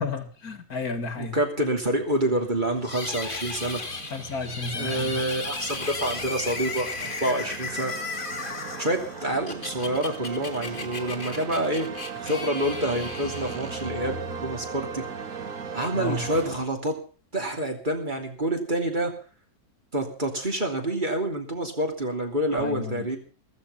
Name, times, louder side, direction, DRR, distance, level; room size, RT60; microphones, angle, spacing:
voice 1, 0.0-1.4 4.1-5.2 15.9-16.2 22.5-23.1, left 3 dB, 70° left, 10 dB, 2.3 m, -32 dB
voice 2, 1.2-3.8 4.7-7.9 8.8-11.9 12.1-15.0 15.7-17.0 17.3-19.1 19.9-23.2, right 1 dB, 30° right, 3 dB, 3.2 m, -27 dB
sound 1, 2.0-16.7, right 5 dB, 60° right, 2.2 m, -38 dB
sound 2, 2.8-14.1, left 3 dB, 35° left, 1.9 m, -35 dB
15.0 x 14.5 x 5.6 m, 0.38 s
omnidirectional pair, 1.7 m